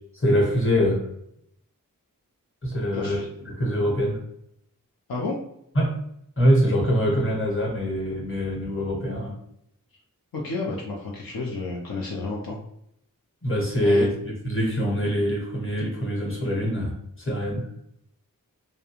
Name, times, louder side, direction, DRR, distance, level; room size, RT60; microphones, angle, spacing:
voice 1, 0.2-1.0 2.6-4.2 5.7-5.9 6.4-9.3 13.4-17.7, equal, 35° left, -3 dB, 1.0 m, -24 dB
voice 2, 2.9-3.3 5.1-5.4 10.3-12.6 13.8-14.1, left 3 dB, 75° left, -2 dB, 0.5 m, -31 dB
2.4 x 2.1 x 2.9 m, 0.75 s
wide cardioid pair, 55°, 35 cm